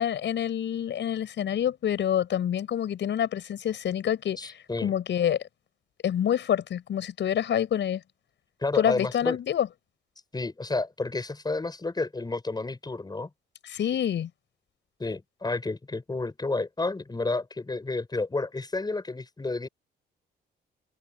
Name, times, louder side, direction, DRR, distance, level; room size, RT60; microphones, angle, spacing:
voice 1, 0.0-5.5 6.0-8.0 8.7-9.7 13.6-14.3, left 10 dB, 65° left, 6.1 m, -27 dB
voice 2, 4.4-4.9 8.6-9.4 10.3-13.3 15.0-19.7, left 3 dB, 20° left, 7.1 m, -30 dB
open air
cardioid pair, 90°, 20 cm